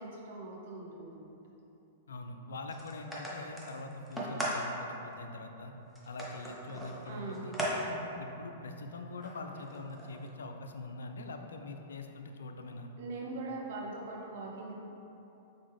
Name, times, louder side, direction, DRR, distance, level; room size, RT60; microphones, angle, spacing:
voice 1, 0.0-1.4 7.1-7.6 13.0-14.8, right 2 dB, 60° right, -2 dB, 0.7 m, -41 dB
voice 2, 2.1-5.7 6.0-7.5 7.8-12.9, left 2 dB, 75° left, 5 dB, 0.3 m, -43 dB
sound 1, 2.7-4.6 5.1-5.2 6.0-7.7 8.1-8.2 9.2-10.3, right 1 dB, ahead, 0.8 m, -38 dB
3.7 x 3.6 x 3.4 m, 3.0 s
hypercardioid pair, 105°, 0 cm